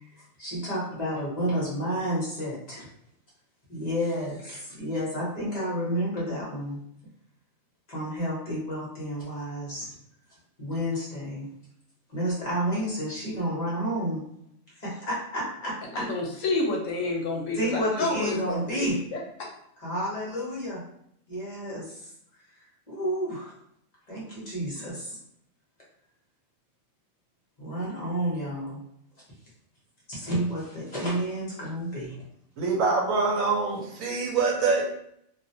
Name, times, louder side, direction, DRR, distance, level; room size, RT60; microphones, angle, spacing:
voice 1, 0.4-2.8 3.7-6.8 7.9-9.9 10.6-11.5 12.1-14.2 14.8-16.1 17.5-19.0 19.8-20.8 21.3-22.0 22.9-23.5 24.1-25.2 27.6-28.8 30.1-32.2, equal, 35° left, -7 dB, 0.8 m, -30 dB
voice 2, 15.9-19.5, left 2 dB, 70° left, 0 dB, 0.9 m, -29 dB
voice 3, 32.6-34.8, right 4 dB, 80° right, 0 dB, 1.0 m, -25 dB
2.4 x 2.1 x 2.6 m, 0.71 s
omnidirectional pair, 1.4 m